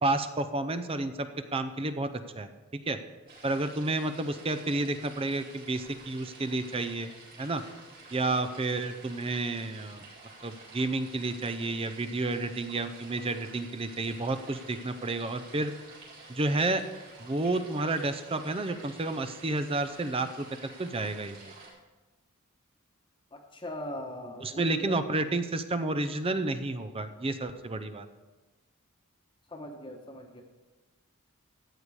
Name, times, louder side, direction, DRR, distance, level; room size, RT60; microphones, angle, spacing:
voice 1, 0.0-2.1 2.4-2.5 2.9-3.0 3.4-7.1 7.4-7.6 8.1-10.1 10.4-15.7 16.3-16.8 17.2-20.5 20.8-21.5 24.4-28.1, right 2 dB, 25° right, 10 dB, 0.6 m, -30 dB
sound 1, 3.3-21.7, right 3 dB, 40° right, 3.9 m, -50 dB
voice 2, 23.3-25.0 29.5-30.4, left 1 dB, 20° left, 2 dB, 1.1 m, -40 dB
14.0 x 8.3 x 4.8 m, 1.2 s
head